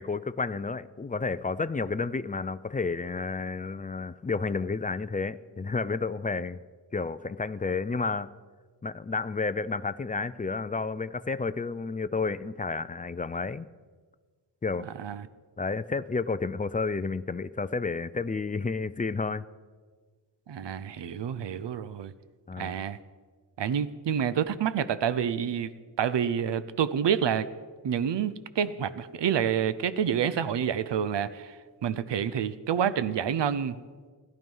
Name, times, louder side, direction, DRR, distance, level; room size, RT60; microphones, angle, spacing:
voice 1, 0.0-6.6 6.9-8.3 8.8-13.7 14.6-14.9 15.6-19.5 22.5-22.8, left 4 dB, 20° left, 15 dB, 0.3 m, -31 dB
voice 2, 14.8-15.3 20.5-22.1 22.6-23.0 23.6-25.7 26.0-27.5 27.8-31.6 31.8-33.8, right 8 dB, 80° right, 14 dB, 0.7 m, -28 dB
17.0 x 12.0 x 5.5 m, 1.5 s
wide cardioid pair, 140°, 42 cm